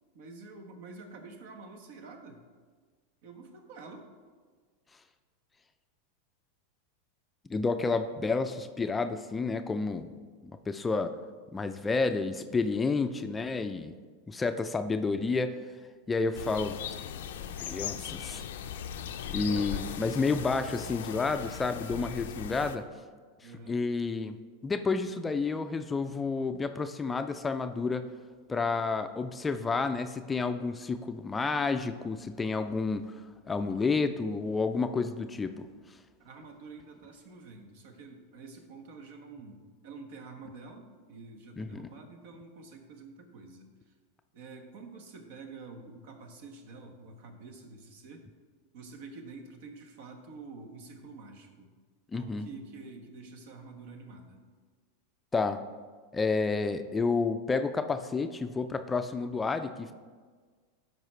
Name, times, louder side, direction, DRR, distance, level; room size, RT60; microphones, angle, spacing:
voice 1, 0.1-2.4 3.2-4.1 19.0-20.0 23.4-23.8 36.2-43.7 44.3-48.3 48.7-51.7 52.1-54.4, right 3 dB, 65° right, 4 dB, 1.2 m, -48 dB
voice 2, 7.5-10.1 10.4-11.1 11.5-13.9 14.3-15.6 16.1-16.8 17.6-18.4 19.3-22.9 23.7-24.4 24.6-28.1 28.5-33.0 33.5-35.7 41.6-41.8 52.1-52.5 55.3-55.6 56.1-59.9, left 4 dB, 15° left, 9 dB, 0.4 m, -30 dB
sound 1, 16.3-22.8, left 9 dB, 75° left, 0.5 m, -38 dB
12.0 x 4.7 x 3.3 m, 1.5 s
hypercardioid pair, 105°, 0 cm